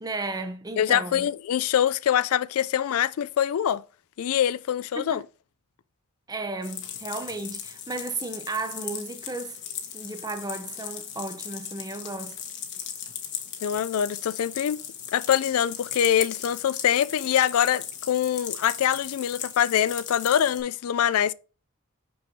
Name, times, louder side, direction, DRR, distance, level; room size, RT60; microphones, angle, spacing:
voice 1, 0.0-1.3 5.0-5.2 6.3-9.6 9.9-12.4, right 3 dB, 15° right, 0.6 m, -34 dB
voice 2, 0.8-3.8 4.2-5.2 13.6-14.8 15.1-21.3, left 9 dB, 75° left, 0.3 m, -24 dB
sound 1, 6.6-20.6, left 8 dB, 55° left, 1.2 m, -38 dB
6.2 x 6.1 x 2.7 m
head